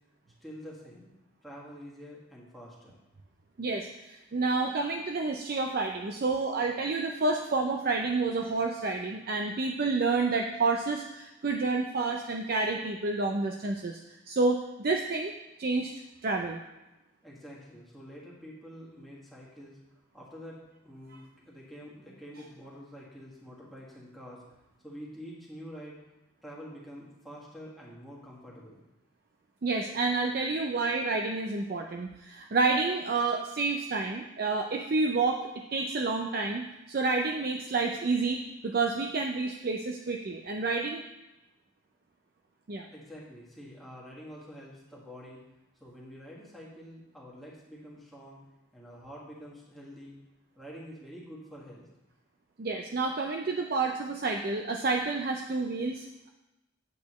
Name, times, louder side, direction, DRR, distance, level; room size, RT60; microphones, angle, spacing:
voice 1, 0.4-1.1 1.4-3.0 17.2-19.8 20.1-24.4 24.8-26.0 26.4-28.8 42.9-45.4 45.8-48.4 48.7-50.2 50.6-51.9, equal, ahead, -6 dB, 1.7 m, -47 dB
voice 2, 3.6-15.3 15.6-15.9 16.2-16.6 29.6-41.0 42.7-42.9 52.6-56.3, right 3 dB, 45° right, 3 dB, 0.4 m, -29 dB
8.3 x 8.3 x 3.1 m, 0.99 s
head